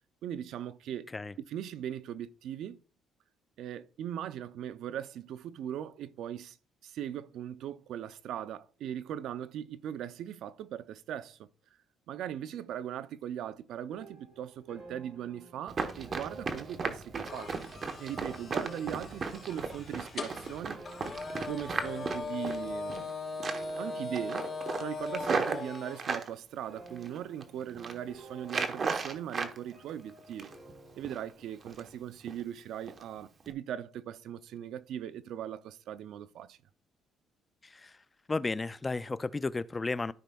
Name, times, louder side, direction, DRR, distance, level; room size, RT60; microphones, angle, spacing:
voice 1, 0.2-1.1 1.5-2.8 3.6-6.6 6.8-11.5 12.1-17.5 18.0-20.8 21.4-23.1 23.8-24.5 24.8-30.5 30.9-36.6, right 10 dB, 75° right, 0.4 m, -39 dB
sound 1, 13.9-25.4 25.6-26.2 26.7-32.0, right 2 dB, 25° right, 3.6 m, -54 dB
Run, 15.7-23.1 23.4-23.8 24.1-26.3 26.9-27.4 27.7-28.0 28.4-29.6 29.9-30.7 31.0-31.2 31.6-32.0 32.3-32.4 32.9-33.0 33.4-33.5, right 4 dB, 40° right, 1.0 m, -35 dB
sound 2, 17.3-26.0, left 3 dB, 35° left, 3.7 m, -40 dB
voice 2, 37.6-38.0 38.3-40.1, left 3 dB, 20° left, 0.3 m, -33 dB
13.5 x 5.1 x 2.3 m
cardioid pair, 105°, 0 cm